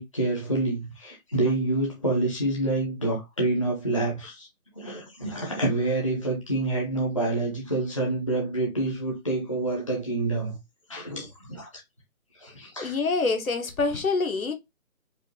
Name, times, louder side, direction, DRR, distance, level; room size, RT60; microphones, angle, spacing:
voice 1, 0.0-4.5 4.7-10.6 10.9-11.8 12.4-13.0, right 2 dB, 25° left, 0.7 m, -27 dB
voice 2, 12.8-14.5, left 3 dB, 70° left, 1.2 m, -26 dB
4.8 x 2.3 x 2.9 m
figure-of-eight pair, 165°, 43 cm